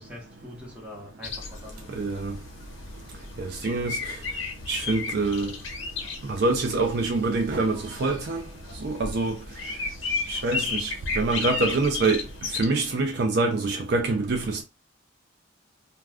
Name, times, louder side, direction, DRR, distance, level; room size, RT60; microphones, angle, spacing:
voice 1, 0.0-2.0 3.3-3.7, equal, 5° right, 1.0 m, -44 dB
sound 1, 1.2-12.7, left 4 dB, 75° left, 0.8 m, -34 dB
voice 2, 1.9-2.3 3.4-4.1 4.7-5.5 6.3-8.4 8.8-9.3 10.3-12.2 12.5-14.6, right 3 dB, 55° right, 0.4 m, -25 dB
2.3 x 2.3 x 3.3 m
head